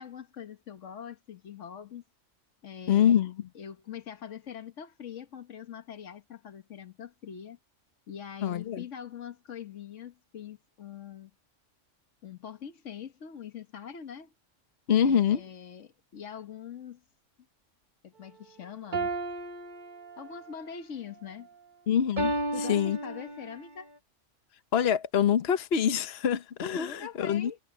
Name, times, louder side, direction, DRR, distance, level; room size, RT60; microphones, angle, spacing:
voice 1, 0.0-2.0 2.6-3.2 3.5-7.6 8.1-11.3 12.2-14.3 15.0-17.0 18.0-19.1 20.2-21.5 22.5-23.9 26.7-27.6, left 8 dB, 85° left, 1.5 m, -43 dB
voice 2, 2.9-3.5 8.4-8.8 14.9-15.4 21.9-23.0 24.7-27.5, left 8 dB, 60° left, 1.2 m, -25 dB
sound 1, 18.9-20.5 22.2-23.7, right 2 dB, 40° right, 1.3 m, -33 dB
omnidirectional pair, 1.2 m